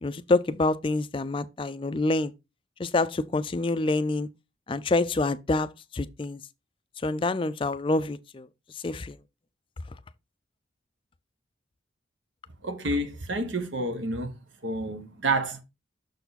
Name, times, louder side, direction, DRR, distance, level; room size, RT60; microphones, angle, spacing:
voice 1, 0.0-2.3 2.8-4.3 4.7-5.7 5.9-6.4 7.0-8.5 8.8-9.2, left 2 dB, 25° left, 0.4 m, -26 dB
voice 2, 12.6-14.3 14.6-15.6, right 2 dB, 75° right, 1.1 m, -29 dB
6.6 x 4.6 x 4.0 m
head